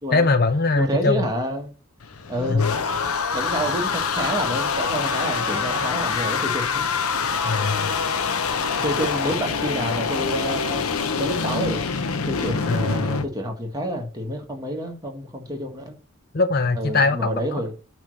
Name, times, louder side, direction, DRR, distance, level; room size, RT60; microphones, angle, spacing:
voice 1, 0.1-1.3 2.5-2.7 7.4-7.9 12.7-13.0 16.3-17.3, left 3 dB, 45° left, 0.6 m, -21 dB
voice 2, 0.7-1.7 2.3-2.9 3.3-6.8 8.8-11.8 12.3-15.9 16.7-17.7, equal, 15° right, 1.5 m, -28 dB
sound 1, 2.0-13.3, left 5 dB, 80° left, 0.8 m, -25 dB
8.6 x 3.2 x 6.2 m
head